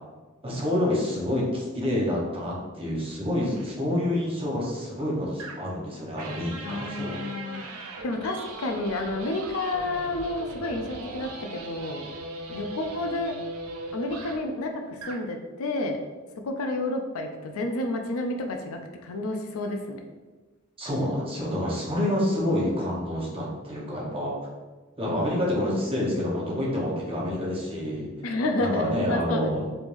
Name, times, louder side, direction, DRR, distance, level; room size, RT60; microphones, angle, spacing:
voice 1, 0.4-7.2 20.8-24.3 25.0-28.1 28.6-29.7, left 1 dB, 25° right, -4 dB, 0.8 m, -28 dB
sound 1, 3.6-3.8 5.4-5.8 6.2-14.5 14.9-15.3, right 2 dB, 85° right, 0.5 m, -39 dB
voice 2, 6.6-7.6 8.0-12.1 12.5-13.3 13.9-16.0 16.4-20.0 28.2-29.7, left 2 dB, 65° left, 4 dB, 0.4 m, -30 dB
3.4 x 3.1 x 2.6 m, 1.3 s
head